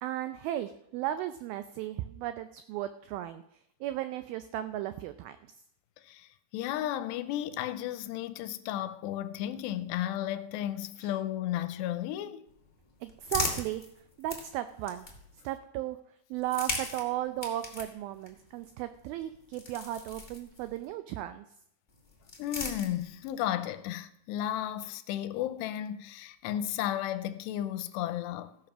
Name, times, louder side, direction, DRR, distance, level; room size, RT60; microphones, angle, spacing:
voice 1, 0.0-3.4 3.8-5.4 11.0-11.1 13.0-13.8 14.2-15.1 15.4-16.0 16.3-21.4, right 13 dB, 90° right, 2.1 m, -35 dB
voice 2, 6.0-12.5 22.4-28.7, left 12 dB, 90° left, 2.8 m, -34 dB
sound 1, 12.5-15.5 16.3-20.9 21.9-23.4, left 3 dB, 45° left, 0.6 m, -40 dB
15.5 x 7.4 x 5.9 m
omnidirectional pair, 4.9 m